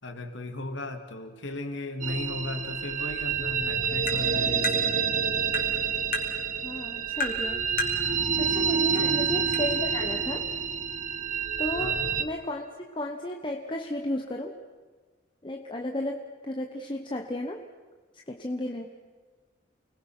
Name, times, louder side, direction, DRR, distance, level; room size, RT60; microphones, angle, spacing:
voice 1, 0.0-4.8 9.0-9.3 11.8-12.1, left 2 dB, 75° left, 6 dB, 2.6 m, -36 dB
sound 1, 2.0-12.2, right 6 dB, 40° right, 1.1 m, -28 dB
Tap, 4.1-4.2 4.6-4.8 5.5-5.7 6.1-6.3 7.2-7.4 7.8-8.0 8.9-9.0 9.5-9.6, left 3 dB, 45° left, 3.7 m, -30 dB
voice 2, 6.6-7.7 8.4-10.5 11.6-14.6 15.4-17.6 18.3-18.9, left 1 dB, 25° left, 2 dB, 1.2 m, -34 dB
29.5 x 21.0 x 6.2 m, 1.4 s
head